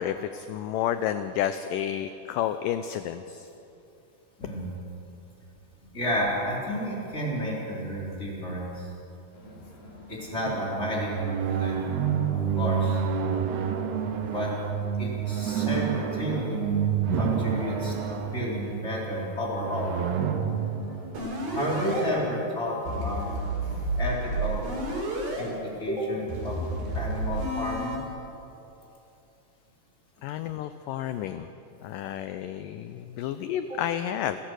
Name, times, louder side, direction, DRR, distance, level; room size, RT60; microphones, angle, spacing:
voice 1, 0.0-3.5 30.2-31.5 31.8-34.4, left 10 dB, 85° left, 10 dB, 1.9 m, -31 dB
voice 2, 4.4-4.7 5.9-8.9 10.1-11.1 11.4-11.8 12.3-13.0 14.2-14.5 15.0-16.6 17.1-19.9 21.5-23.3 23.6-24.7 25.4-26.6 26.9-28.0 33.7-33.8, equal, 15° left, -5 dB, 4.0 m, -31 dB
Crowd, 9.3-22.9, left 2 dB, 50° left, 6.2 m, -49 dB
sound 1, 10.5-22.1, right 7 dB, 85° right, 3.1 m, -29 dB
sound 2, 21.1-22.0 22.9-25.4 26.3-28.0, right 1 dB, 65° right, 6.6 m, -31 dB
28.5 x 14.5 x 6.4 m, 2.9 s
omnidirectional pair, 4.6 m